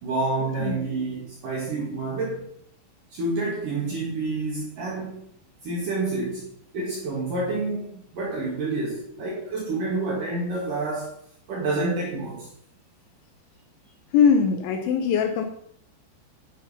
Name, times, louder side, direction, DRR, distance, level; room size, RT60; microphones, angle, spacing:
voice 1, 0.0-2.5 3.1-5.3 5.6-11.1 11.5-12.5, right 3 dB, 50° right, -3 dB, 3.6 m, -28 dB
voice 2, 14.1-15.4, left 6 dB, 80° left, 5 dB, 3.4 m, -21 dB
11.5 x 10.5 x 5.5 m, 0.65 s
omnidirectional pair, 5.4 m